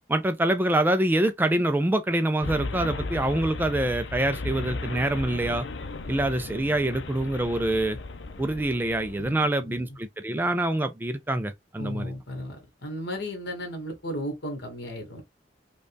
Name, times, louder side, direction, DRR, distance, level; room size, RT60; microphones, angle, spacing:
voice 1, 0.1-5.7 6.1-8.0 8.4-12.1, right 1 dB, 10° right, 0.3 m, -25 dB
sound 1, 2.4-9.3, left 3 dB, 85° left, 0.6 m, -35 dB
voice 2, 9.2-9.8 11.8-15.2, equal, 65° left, 1.6 m, -35 dB
5.1 x 2.3 x 2.2 m
head